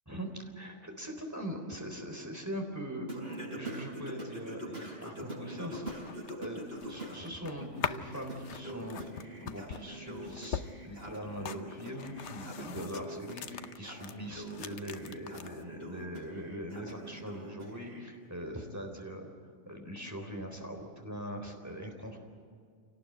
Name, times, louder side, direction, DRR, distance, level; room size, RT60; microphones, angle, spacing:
voice 1, 0.1-5.8 6.3-9.0 9.4-19.3 19.7-22.2, equal, 15° right, 2 dB, 3.8 m, -41 dB
Singing, 3.1-7.2 7.6-18.0, equal, 55° right, 6.2 m, -44 dB
sound 1, 5.7-14.1 14.4-15.6, left 8 dB, 75° left, 1.1 m, -42 dB
27.0 x 18.5 x 9.0 m, 2.2 s
omnidirectional pair, 1.2 m